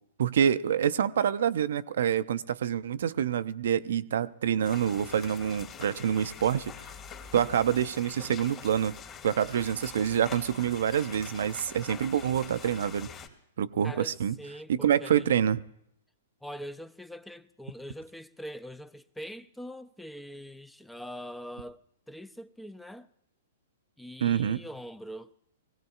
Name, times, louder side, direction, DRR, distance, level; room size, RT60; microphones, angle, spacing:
voice 1, 0.2-6.7 7.3-8.9 9.2-13.1 13.6-14.4 14.7-15.6 24.2-24.6, right 9 dB, 65° right, 0.5 m, -27 dB
sound 1, 4.6-13.3, left 7 dB, 30° left, 2.1 m, -45 dB
voice 2, 13.8-15.3 16.4-21.8 22.1-23.1 24.0-25.3, equal, 5° left, 0.5 m, -43 dB
23.5 x 17.0 x 2.4 m
figure-of-eight pair, 110°, 0 cm